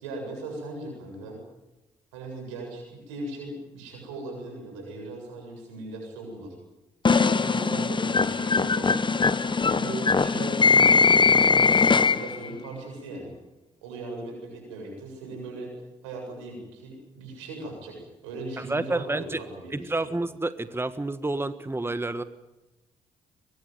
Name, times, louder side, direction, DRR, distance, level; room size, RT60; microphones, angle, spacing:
voice 1, 0.0-1.4 2.1-6.6 7.1-9.1 9.7-13.3 13.8-15.7 16.0-20.1, right 2 dB, 85° right, 2 dB, 7.6 m, -38 dB
sound 1, 7.1-12.5, left 5 dB, 30° left, 1.2 m, -21 dB
voice 2, 18.6-19.4 19.7-22.2, right 2 dB, 15° right, 12 dB, 1.5 m, -29 dB
23.0 x 21.0 x 9.3 m, 1.0 s
hypercardioid pair, 40°, 15 cm